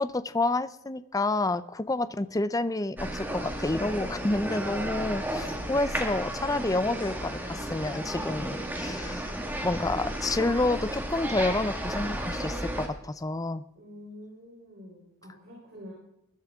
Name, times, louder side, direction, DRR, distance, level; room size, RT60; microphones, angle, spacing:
voice 1, 0.0-9.3 9.6-13.6, left 2 dB, 15° left, 14 dB, 0.5 m, -29 dB
sound 1, 3.0-12.9, right 1 dB, 10° right, 1.8 m, -33 dB
voice 2, 13.8-15.9, left 1 dB, 50° right, -3 dB, 3.9 m, -47 dB
20.5 x 11.5 x 3.6 m, 0.82 s
head